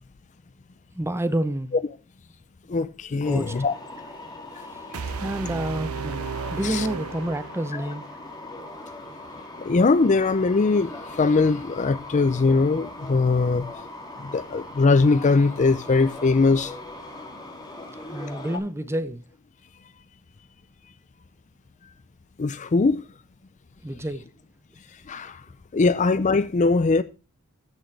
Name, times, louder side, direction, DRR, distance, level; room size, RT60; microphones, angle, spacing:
voice 1, 0.9-1.7 3.3-3.5 4.7-4.8 5.2-6.2 6.5-8.1 18.0-19.2 23.8-24.2, right 1 dB, 10° right, 0.8 m, -29 dB
voice 2, 2.7-3.7 5.0-5.1 6.6-6.9 9.6-13.7 14.2-16.7 18.5-18.6 22.4-23.0 25.1-25.4 25.7-27.0, left 3 dB, 35° left, 0.4 m, -21 dB
sound 1, 3.2-18.6, left 2 dB, 20° left, 2.5 m, -40 dB
sound 2, 4.9-8.0, right 6 dB, 70° right, 0.6 m, -34 dB
14.5 x 6.3 x 3.3 m
head